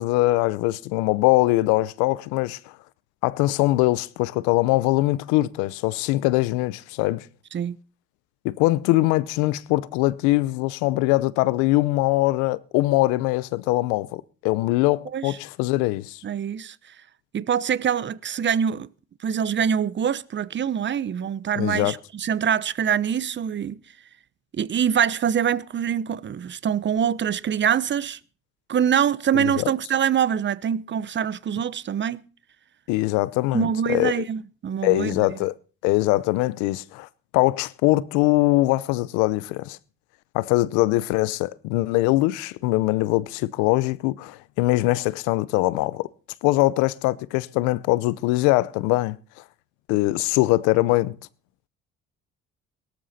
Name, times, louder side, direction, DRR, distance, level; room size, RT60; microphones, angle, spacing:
voice 1, 0.0-2.6 3.2-7.3 8.4-16.2 21.6-22.0 29.3-29.7 32.9-34.2 34.8-35.5 35.8-37.1 37.3-39.8 40.3-46.1 46.4-49.2 49.9-51.1, left 19 dB, 85° left, 0.8 m, -22 dB
voice 2, 16.2-16.8 17.3-18.9 19.2-23.8 24.5-28.2 28.7-32.2 33.5-35.4, right 8 dB, 40° right, 0.9 m, -24 dB
18.0 x 13.0 x 4.2 m
supercardioid pair, 75°, 29 cm